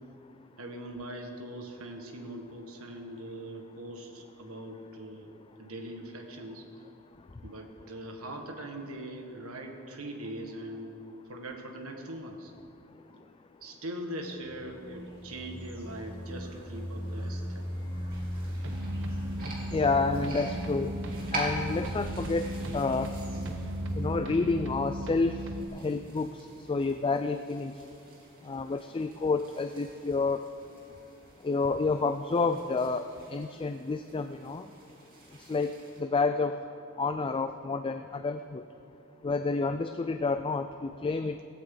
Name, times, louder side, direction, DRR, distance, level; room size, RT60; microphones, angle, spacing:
voice 1, 0.6-5.3 5.6-6.7 7.4-11.0 11.3-12.5 13.6-17.7, right 1 dB, 80° right, 3 dB, 1.7 m, -41 dB
sound 1, 14.4-24.1, equal, 25° right, 2.7 m, -38 dB
sound 2, 18.1-36.0, right 1 dB, 40° right, 2.9 m, -46 dB
sound 3, 18.6-25.6, right 1 dB, 60° right, 1.0 m, -38 dB
voice 2, 19.7-20.9 21.3-22.5 22.7-23.1 24.0-25.4 25.7-27.7 28.4-30.4 31.4-34.7 35.5-36.6 37.0-38.6 39.2-41.4, left 3 dB, 25° left, 9 dB, 0.3 m, -29 dB
17.0 x 15.5 x 3.9 m, 2.7 s
head